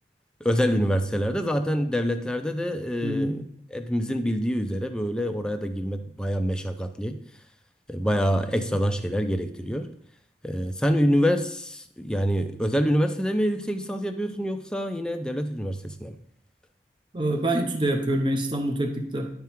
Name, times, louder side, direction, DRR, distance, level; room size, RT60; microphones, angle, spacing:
voice 1, 0.4-3.4 3.7-7.2 7.9-9.9 10.4-16.1, equal, 5° left, 6 dB, 0.5 m, -26 dB
voice 2, 3.0-3.4 17.1-19.3, right 1 dB, 25° right, 4 dB, 0.7 m, -26 dB
10.5 x 3.5 x 4.5 m, 0.67 s
head